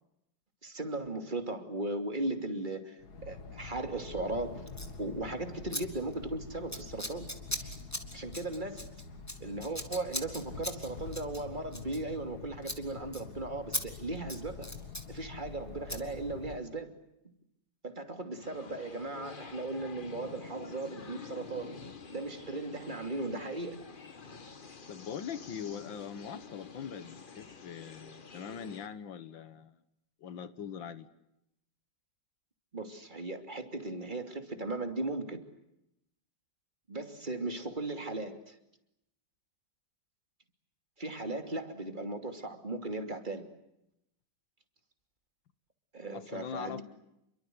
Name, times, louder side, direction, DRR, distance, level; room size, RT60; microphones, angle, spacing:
voice 1, 0.6-4.7 5.0-7.3 7.6-7.7 8.1-8.9 9.4-14.7 15.1-17.0 17.8-21.7 22.1-23.8 32.7-35.4 36.9-38.5 41.0-43.5 45.9-46.8, right 2 dB, 25° right, 6 dB, 2.9 m, -37 dB
sound 1, 3.0-16.6, left 4 dB, 55° left, 2.4 m, -46 dB
Scissors, 4.7-4.9 5.7-5.8 6.1-6.3 6.7-12.4 12.6-12.8 13.1-13.2 13.7-13.8 14.2-15.1 15.9-16.0, left 1 dB, 10° left, 2.6 m, -39 dB
sound 2, 18.4-28.9, left 4 dB, 30° left, 1.2 m, -48 dB
voice 2, 24.9-29.8 30.2-31.1 46.1-46.8, left 7 dB, 85° left, 13 dB, 1.9 m, -42 dB
29.0 x 23.5 x 7.9 m, 0.84 s
omnidirectional pair, 2.0 m